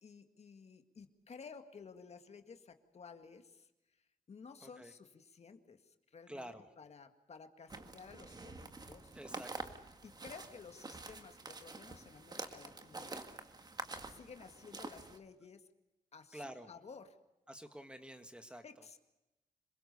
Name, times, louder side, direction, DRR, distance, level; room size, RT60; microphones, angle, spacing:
voice 1, 0.0-3.7 4.3-6.5 6.8-9.1 10.0-13.2 14.0-15.6 16.1-17.2 18.5-19.0, left 5 dB, 50° left, 7 dB, 1.9 m, -54 dB
voice 2, 4.6-4.9 6.3-6.6 9.1-9.7 16.3-16.7 17.5-18.6, right 1 dB, 5° right, 7 dB, 1.6 m, -49 dB
sound 1, 7.7-15.2, right 3 dB, 30° right, 1.9 m, -47 dB
27.0 x 22.0 x 6.8 m, 0.97 s
wide cardioid pair, 160°, 14 cm